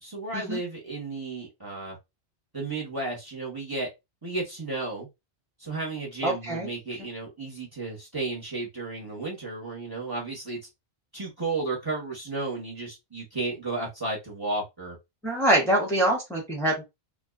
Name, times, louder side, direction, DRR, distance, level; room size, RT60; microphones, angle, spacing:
voice 1, 0.0-2.0 2.5-3.9 4.2-5.1 5.6-10.6 11.1-15.0, right 3 dB, 20° right, 0.9 m, -33 dB
voice 2, 6.2-6.7 15.2-16.8, right 1 dB, 5° left, 0.6 m, -24 dB
2.5 x 2.2 x 2.3 m
omnidirectional pair, 1.1 m